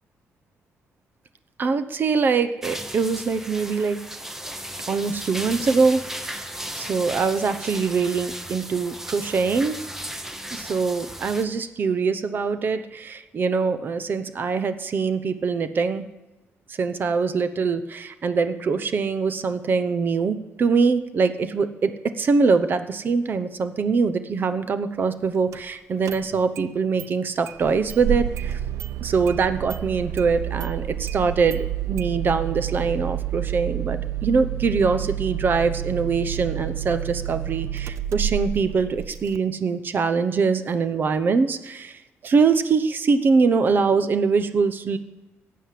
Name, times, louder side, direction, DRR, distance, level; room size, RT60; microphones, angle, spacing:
voice 1, 1.6-4.0 4.9-6.3 6.9-9.8 10.5-16.1 16.8-28.6 29.0-45.0, right 5 dB, 40° right, 10 dB, 0.8 m, -23 dB
sound 1, 2.6-11.4, right 1 dB, 5° right, 1.0 m, -35 dB
Engine starting, 25.5-25.6 26.0-26.7 27.0-27.1 27.5-39.4, right 11 dB, 80° right, 0.5 m, -29 dB
18.0 x 8.4 x 7.6 m, 1.1 s
cardioid pair, 140°, 5 cm